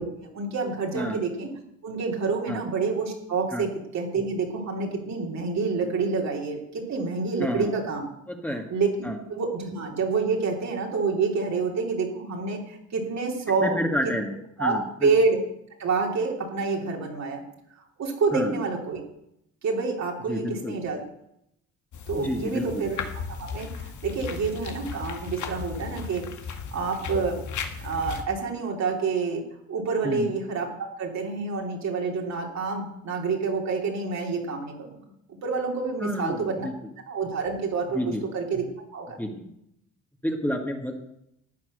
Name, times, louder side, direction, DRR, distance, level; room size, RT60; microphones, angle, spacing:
voice 1, 0.0-1.5 1.8-8.1 8.7-13.8 14.0-14.1 14.6-15.4 15.8-17.4 18.0-19.0 19.6-21.0 22.1-23.0 23.4-26.2 26.7-27.4 27.8-29.4 29.7-35.0 35.3-36.7 37.1-38.6 38.9-39.2, right 4 dB, 65° right, 0 dB, 3.5 m, -28 dB
voice 2, 7.4-7.8 8.4-8.7 9.0-9.2 13.6-15.1 18.3-18.5 20.3-20.7 22.1-22.9 30.0-30.3 36.0-36.7 37.9-38.2 39.2-39.5 40.2-41.0, equal, 5° left, 2 dB, 2.1 m, -29 dB
sound 1, 21.9-28.2, left 6 dB, 75° left, 1.8 m, -36 dB
14.0 x 9.1 x 6.6 m, 0.79 s
cardioid pair, 90°, 30 cm